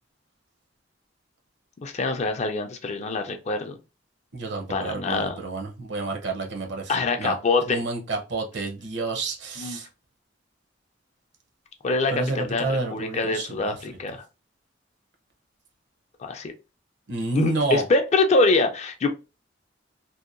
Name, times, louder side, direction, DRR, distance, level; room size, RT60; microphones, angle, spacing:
voice 1, 1.8-3.8 4.7-5.4 6.9-7.8 9.6-9.8 11.8-14.2 16.2-16.5 17.3-19.1, left 3 dB, 35° left, 0.4 m, -24 dB
voice 2, 4.3-7.3 7.7-9.9 12.1-13.8 17.1-17.8, right 3 dB, 65° right, 0.7 m, -29 dB
2.8 x 2.1 x 2.4 m
head